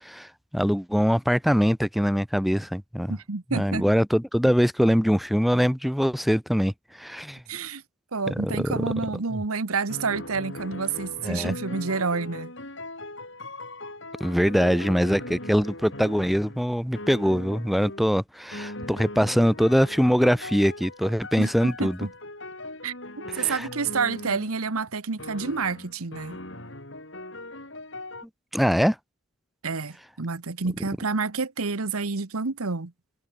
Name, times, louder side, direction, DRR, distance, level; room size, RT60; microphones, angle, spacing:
voice 1, 0.0-3.2 3.5-7.4 8.3-8.9 9.3-9.4 11.3-11.5 14.2-22.0 23.3-23.7 28.5-29.0, equal, ahead, 1.7 m, -23 dB
voice 2, 3.1-3.8 7.5-7.8 8.1-12.5 21.4-22.1 22.8-26.4 29.6-32.9, right 4 dB, 85° right, 1.2 m, -29 dB
sound 1, 9.9-16.7 17.0-18.1 18.5-24.6 25.2-28.3, left 1 dB, 60° left, 7.5 m, -39 dB
head